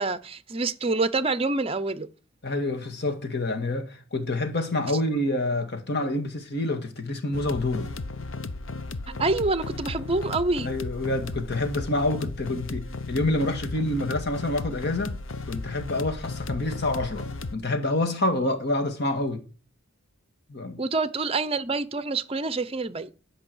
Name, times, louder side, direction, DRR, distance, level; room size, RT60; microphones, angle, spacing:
voice 1, 0.0-2.1 9.2-10.7 20.8-23.1, right 3 dB, 30° right, 0.7 m, -26 dB
voice 2, 2.4-7.9 10.6-15.2 15.5-19.4 20.5-20.8, left 2 dB, 55° left, 1.8 m, -27 dB
sound 1, 7.3-17.5, left 3 dB, 70° left, 0.9 m, -35 dB
11.0 x 5.4 x 7.9 m
head